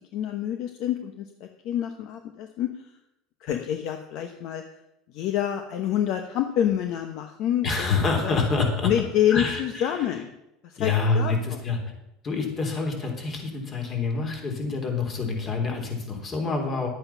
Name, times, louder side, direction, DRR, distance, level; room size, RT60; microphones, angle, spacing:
voice 1, 0.1-2.7 3.4-4.6 5.1-8.4 8.8-10.3 10.6-11.6, left 10 dB, 60° left, 6 dB, 1.0 m, -27 dB
voice 2, 7.6-8.9 9.3-9.9 10.8-11.8 12.2-16.9, left 4 dB, 35° left, 2 dB, 3.3 m, -27 dB
11.5 x 8.7 x 5.8 m, 0.87 s
supercardioid pair, 120°, 0 cm